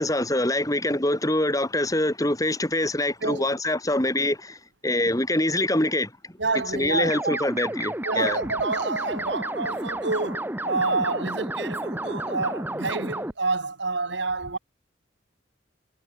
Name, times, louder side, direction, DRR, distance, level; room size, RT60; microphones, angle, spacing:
voice 1, 0.0-6.1 6.7-8.4, left 1 dB, 20° left, 3.5 m, -24 dB
voice 2, 6.4-7.4 8.0-14.6, right 3 dB, 65° right, 2.0 m, -28 dB
sound 1, 7.0-13.3, right 1 dB, 10° right, 1.4 m, -31 dB
head